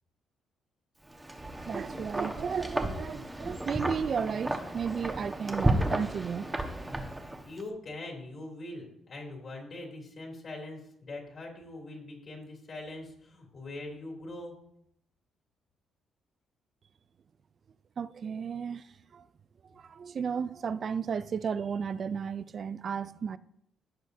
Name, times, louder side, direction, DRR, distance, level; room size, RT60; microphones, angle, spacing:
Wind, 1.1-7.6, right 1 dB, 10° right, 1.3 m, -33 dB
voice 1, 1.7-6.7 18.0-18.8 19.1-19.2 19.8-23.4, right 6 dB, 50° right, 0.4 m, -34 dB
voice 2, 7.4-14.5, left 2 dB, 50° left, 3.1 m, -42 dB
16.0 x 6.3 x 2.7 m
cardioid pair, 90°, 0 cm